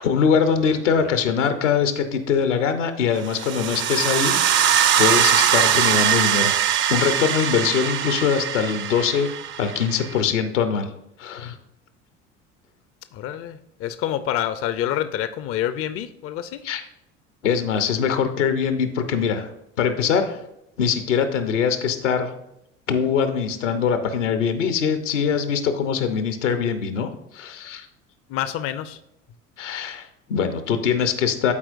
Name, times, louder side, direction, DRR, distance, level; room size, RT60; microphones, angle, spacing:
voice 1, 0.0-6.6 6.9-9.3 9.6-10.9 11.2-11.6 16.6-16.8 17.4-19.5 19.8-20.4 20.8-22.3 22.9-27.9 29.6-31.5, left 7 dB, 80° left, 9 dB, 0.8 m, -22 dB
sound 1, 3.3-10.2, right 9 dB, 35° right, 0.5 m, -21 dB
voice 2, 13.1-16.7 28.3-29.0, left 11 dB, 40° left, 12 dB, 0.5 m, -27 dB
12.0 x 4.4 x 2.5 m, 0.82 s
figure-of-eight pair, 65°, 36 cm